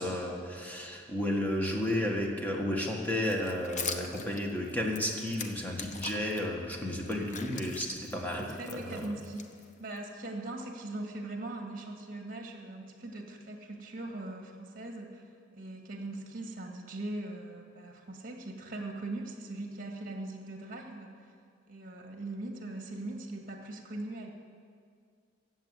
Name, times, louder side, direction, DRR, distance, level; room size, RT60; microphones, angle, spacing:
voice 1, 0.0-9.1, left 1 dB, 10° left, 0 dB, 1.6 m, -32 dB
sound 1, 3.2-6.4 6.9-10.0, left 5 dB, 40° left, 0.9 m, -42 dB
voice 2, 8.3-9.5 9.8-15.2 15.5-21.2 21.7-24.3, right 2 dB, 45° right, 2 dB, 2.0 m, -40 dB
15.5 x 7.5 x 9.3 m, 2.2 s
head